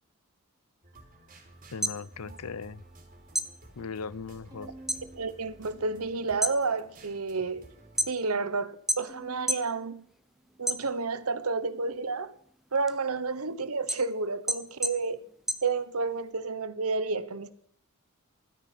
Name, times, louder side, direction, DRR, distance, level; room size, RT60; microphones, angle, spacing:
sound 1, 0.8-8.1, right 1 dB, 40° right, 3.3 m, -53 dB
sound 2, 1.6-3.0 3.3-5.1 5.4-5.9 6.3-8.5 8.9-9.7 10.1-11.3 11.7-16.3, equal, ahead, 0.8 m, -33 dB
voice 1, 1.7-2.8 3.8-4.7, left 5 dB, 75° left, 0.6 m, -38 dB
Bowed string instrument, 4.5-6.9 7.3-8.1 9.1-11.6, right 1 dB, 20° right, 2.9 m, -54 dB
voice 2, 5.1-7.7 8.1-10.0 10.6-12.3 12.7-15.2 15.6-17.5, right 4 dB, 70° right, 1.1 m, -30 dB
13.0 x 10.0 x 9.2 m
head